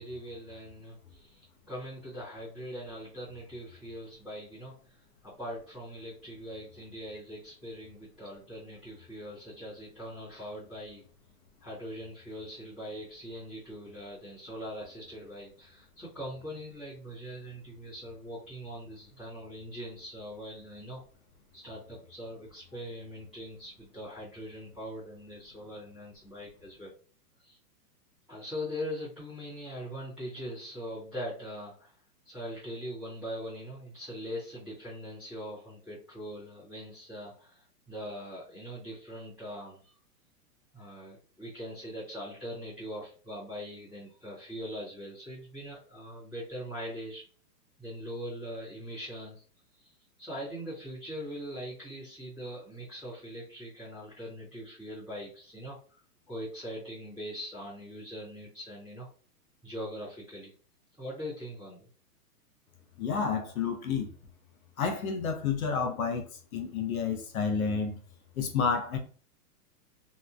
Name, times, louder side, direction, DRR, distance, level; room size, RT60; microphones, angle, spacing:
voice 1, 0.0-5.0 5.2-11.0 11.6-21.0 21.5-26.9 27.4-27.6 28.3-31.9 32.2-39.9 40.7-47.2 47.8-49.4 49.7-56.0 56.3-59.1 59.6-60.5 61.0-61.8, equal, ahead, 0.8 m, -41 dB
voice 2, 63.0-64.1 64.8-66.2 66.5-68.0 68.4-69.0, left 5 dB, 60° left, 0.6 m, -30 dB
2.8 x 2.2 x 2.4 m
hypercardioid pair, 175°, 47 cm